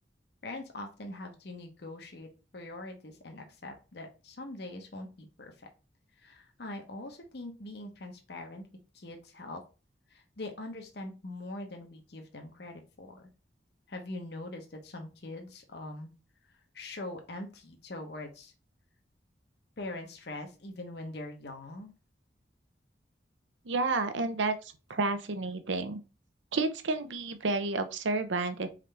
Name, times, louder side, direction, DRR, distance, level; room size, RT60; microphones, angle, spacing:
voice 1, 0.4-5.7 6.2-8.7 8.9-9.6 10.1-13.3 13.9-16.1 16.7-18.5 19.8-21.9, left 2 dB, 60° left, 0.8 m, -42 dB
voice 2, 23.7-24.6 24.9-26.0 26.5-28.7, right 3 dB, 80° right, 0.6 m, -30 dB
4.2 x 3.8 x 3.3 m
head